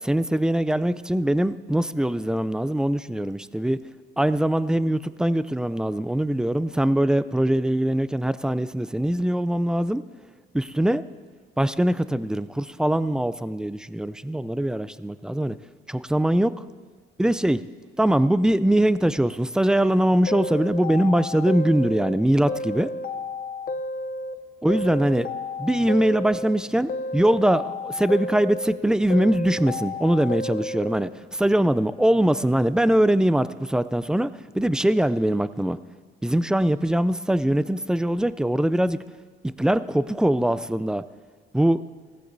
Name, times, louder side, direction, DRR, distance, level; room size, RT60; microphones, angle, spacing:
voice 1, 0.0-3.8 4.2-10.0 10.5-11.0 11.6-15.6 15.9-16.5 17.2-17.6 18.0-22.9 24.6-25.3 25.6-34.3 34.5-35.8 36.2-39.0 39.4-41.0 41.5-41.8, right 1 dB, 5° right, 15 dB, 0.4 m, -22 dB
sound 1, 20.3-22.2 22.5-24.4 24.7-26.6 26.9-28.8 29.1-31.0, left 2 dB, 45° left, 0.6 m, -32 dB
17.0 x 15.0 x 2.7 m, 1.5 s
cardioid pair, 90°, 20 cm